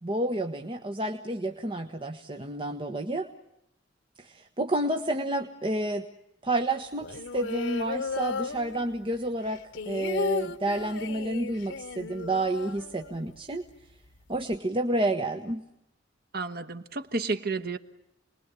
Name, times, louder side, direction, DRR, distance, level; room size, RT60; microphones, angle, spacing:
voice 1, 0.0-3.3 4.2-6.0 6.4-13.7 14.3-15.6, right 1 dB, 30° right, 6 dB, 1.3 m, -30 dB
sound 1, 7.0-9.1 9.4-13.4 13.7-13.8 14.0-14.6, left 4 dB, 85° left, 0.9 m, -34 dB
voice 2, 16.3-17.8, right 3 dB, 55° right, 7 dB, 1.3 m, -31 dB
29.5 x 21.5 x 8.3 m, 0.85 s
head